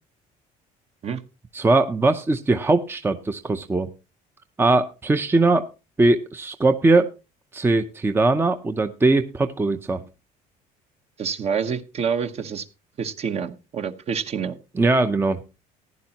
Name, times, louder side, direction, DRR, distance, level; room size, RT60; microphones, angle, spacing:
voice 1, 1.5-3.9 4.6-5.7 6.0-7.1 7.5-10.0 14.8-15.4, right 3 dB, 15° right, 8 dB, 0.7 m, -20 dB
voice 2, 11.2-12.7 13.0-14.6, right 6 dB, 40° right, 9 dB, 1.1 m, -27 dB
15.0 x 11.0 x 2.9 m, 0.28 s
cardioid pair, 125°, 16 cm